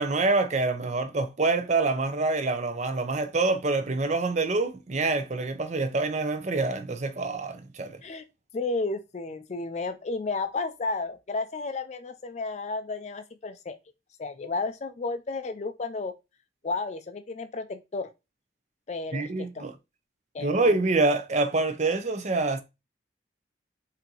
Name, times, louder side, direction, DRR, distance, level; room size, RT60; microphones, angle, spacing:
voice 1, 0.0-8.0 19.1-19.7 20.4-22.6, right 3 dB, 40° right, 0.6 m, -26 dB
voice 2, 8.5-13.8 14.2-16.1 16.6-18.1 18.9-19.7 20.3-20.8, left 3 dB, 40° left, 0.4 m, -32 dB
4.4 x 2.7 x 3.8 m
head